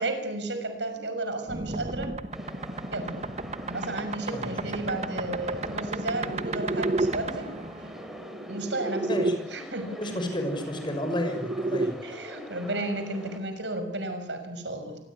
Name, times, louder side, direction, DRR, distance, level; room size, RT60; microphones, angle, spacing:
voice 1, 0.0-2.1 2.9-3.1 3.7-7.5 8.5-9.1 9.5-10.0 12.0-15.0, right 2 dB, 90° right, 7 dB, 6.3 m, -33 dB
sound 1, 1.5-9.4 10.7-11.9, right 2 dB, 40° right, 1.2 m, -32 dB
sound 2, 2.3-13.4, equal, ahead, 4.1 m, -44 dB
voice 2, 4.3-4.9 9.1-9.3 10.0-12.0, left 1 dB, 25° left, 6 dB, 6.2 m, -31 dB
26.0 x 21.5 x 9.9 m, 0.81 s
head